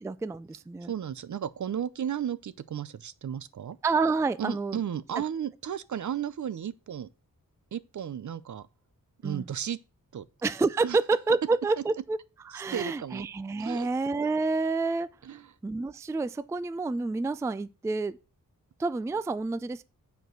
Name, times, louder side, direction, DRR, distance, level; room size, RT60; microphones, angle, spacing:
voice 1, 0.0-0.9 3.8-4.8 9.2-9.5 10.4-12.2 12.5-15.1 15.6-18.2 18.8-19.8, right 3 dB, 10° right, 0.3 m, -28 dB
voice 2, 0.9-3.8 4.4-7.1 7.7-8.7 9.2-9.8 10.1-10.2 10.8-11.0 12.5-13.3 13.6-13.9 15.2-15.5, right 9 dB, 60° right, 0.6 m, -34 dB
8.0 x 4.6 x 6.2 m
wide cardioid pair, 115°, 34 cm